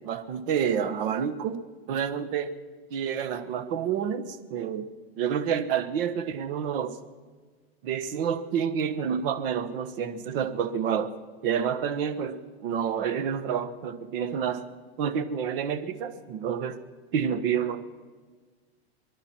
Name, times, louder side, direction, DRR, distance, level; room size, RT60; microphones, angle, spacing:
voice 1, 0.0-1.6 1.9-2.5 2.9-4.9 5.2-6.9 7.8-11.1 11.4-14.6 15.0-16.8 17.1-17.9, right 8 dB, 60° right, 10 dB, 1.5 m, -29 dB
24.0 x 11.5 x 4.5 m, 1.4 s
supercardioid pair, 140°, 32 cm